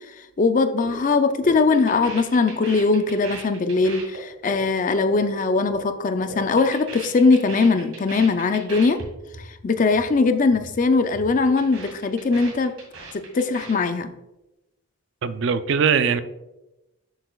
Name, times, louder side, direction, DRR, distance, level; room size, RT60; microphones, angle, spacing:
voice 1, 0.4-9.0 9.6-12.8 13.1-14.1, left 4 dB, 40° left, 0.4 m, -20 dB
sound 1, 0.8-1.0 1.3-5.8 6.1-9.1 9.3-9.5 9.8-10.1 10.4-10.7 11.0-13.7, right 3 dB, 90° right, 2.2 m, -38 dB
voice 2, 15.2-16.2, right 6 dB, 60° right, 0.4 m, -21 dB
7.5 x 6.8 x 2.3 m
head